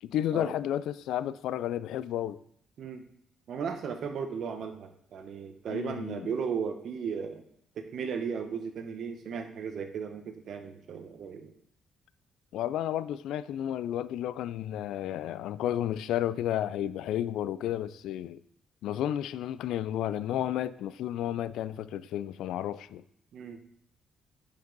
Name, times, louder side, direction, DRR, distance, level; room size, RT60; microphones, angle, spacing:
voice 1, 0.0-2.4 5.7-6.3 12.5-18.4 18.8-23.0, left 11 dB, 85° left, 0.3 m, -32 dB
voice 2, 3.5-7.4 7.8-11.5 23.3-23.6, right 6 dB, 65° right, 0.9 m, -36 dB
9.8 x 5.3 x 3.9 m
cardioid pair, 90°, 0 cm